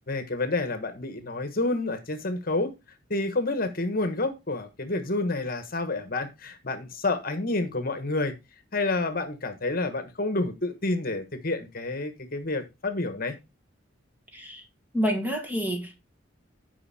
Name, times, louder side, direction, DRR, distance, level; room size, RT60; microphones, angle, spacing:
voice 1, 0.1-2.7 3.1-8.3 8.7-13.3, left 2 dB, 50° left, 1.3 m, -29 dB
voice 2, 14.3-14.7 14.9-16.0, equal, 10° right, 1.6 m, -28 dB
11.0 x 5.3 x 4.2 m
head